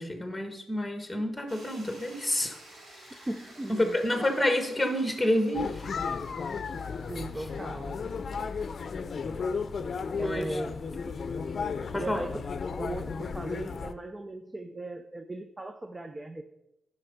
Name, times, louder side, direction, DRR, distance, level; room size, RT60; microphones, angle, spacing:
voice 1, 0.0-2.6 3.1-3.3 3.7-5.9 7.4-7.5 10.2-10.6 11.9-12.2, left 1 dB, 5° left, 5 dB, 1.4 m, -29 dB
sound 1, 1.5-9.5, right 1 dB, 75° right, 4.1 m, -53 dB
voice 2, 3.3-4.0 7.1-8.0 10.2-10.8 12.0-12.5 12.8-16.4, right 2 dB, 20° right, 7 dB, 0.6 m, -37 dB
sound 2, 5.5-13.9, left 5 dB, 60° left, 0.6 m, -34 dB
11.5 x 5.4 x 5.0 m, 0.90 s
cardioid pair, 70°, 0 cm